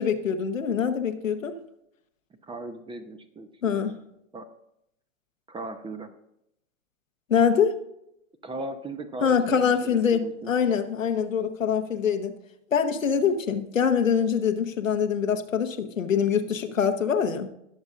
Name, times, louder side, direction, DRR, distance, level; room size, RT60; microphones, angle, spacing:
voice 1, 0.0-1.6 3.6-4.0 7.3-7.7 9.2-12.3 12.7-17.5, left 7 dB, 85° left, 6 dB, 1.2 m, -24 dB
voice 2, 2.5-3.9 4.3-4.5 5.5-6.1 8.4-10.5, right 2 dB, 15° right, 10 dB, 0.9 m, -38 dB
19.5 x 7.1 x 2.5 m, 0.80 s
hypercardioid pair, 105°, 38 cm